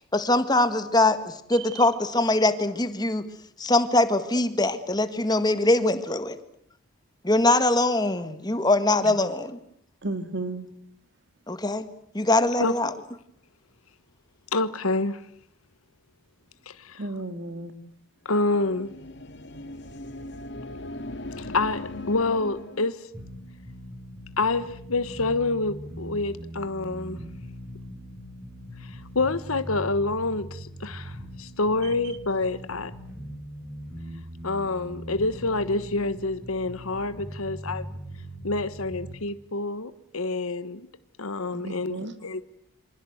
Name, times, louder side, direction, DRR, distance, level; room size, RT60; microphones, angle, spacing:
voice 1, 0.1-3.2 3.6-6.4 7.2-9.6 11.5-11.9 12.1-12.9, left 2 dB, 20° left, 1.7 m, -22 dB
voice 2, 1.5-1.9 9.0-9.2 10.0-10.7 17.0-17.7 41.5-42.1, right 2 dB, 50° right, 2.4 m, -34 dB
voice 3, 14.5-15.2 16.7-17.0 18.2-18.9 21.4-23.0 24.4-27.2 28.8-32.9 34.4-37.9 38.4-40.9 41.2-42.4, left 3 dB, 80° left, 1.3 m, -27 dB
sound 1, 18.4-23.0, left 1 dB, 55° left, 2.2 m, -38 dB
sound 2, 23.1-39.1, equal, 10° right, 6.5 m, -40 dB
28.0 x 25.5 x 8.0 m
head